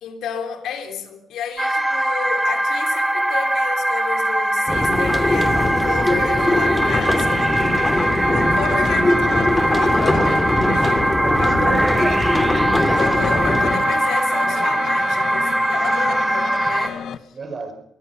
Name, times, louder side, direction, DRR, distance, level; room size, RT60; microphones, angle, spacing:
voice 1, 0.0-7.3 8.3-11.8 12.9-17.0, left 7 dB, 85° left, 3.5 m, -31 dB
sound 1, 1.6-16.9, right 1 dB, 10° right, 1.7 m, -21 dB
sound 2, 4.7-13.7, left 2 dB, 15° left, 2.8 m, -21 dB
sound 3, 6.4-17.2, left 8 dB, 65° left, 1.4 m, -33 dB
voice 2, 11.2-12.3 13.7-13.9 15.8-15.9 16.9-17.0 17.3-17.7, right 3 dB, 40° right, 5.0 m, -32 dB
23.5 x 19.5 x 5.9 m
cardioid pair, 125°, 0 cm